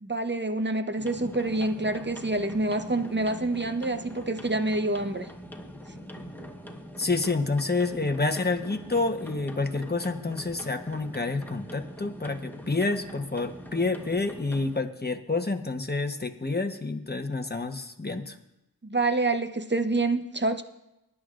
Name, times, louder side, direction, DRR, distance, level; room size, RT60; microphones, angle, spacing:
voice 1, 0.0-5.3 18.8-20.6, right 2 dB, 25° right, 0.9 m, -27 dB
sound 1, 1.0-14.8, equal, 5° left, 1.3 m, -43 dB
voice 2, 7.0-18.4, left 3 dB, 25° left, 1.1 m, -28 dB
21.0 x 11.0 x 2.5 m
wide cardioid pair, 45°, 40 cm